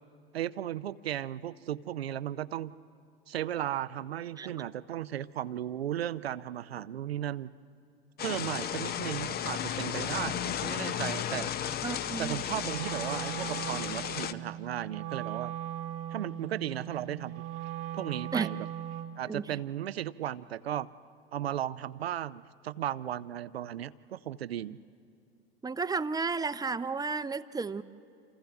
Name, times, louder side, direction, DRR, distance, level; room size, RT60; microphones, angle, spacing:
voice 1, 0.3-2.7 3.3-7.5 8.2-11.5 12.2-15.5 16.1-17.4 17.9-18.7 19.2-20.9 21.3-24.8, right 11 dB, 85° right, 16 dB, 0.6 m, -35 dB
sound 1, 8.2-14.3, left 9 dB, 30° left, 0.7 m, -34 dB
voice 2, 11.8-12.4 18.3-18.5 19.3-19.4 25.6-27.8, right 4 dB, 15° right, 13 dB, 0.6 m, -32 dB
Wind instrument woodwind instrument, 12.5-19.3, right 11 dB, 60° right, 1.0 m, -39 dB
29.0 x 28.0 x 3.5 m, 2.6 s
hypercardioid pair, 80°, 30 cm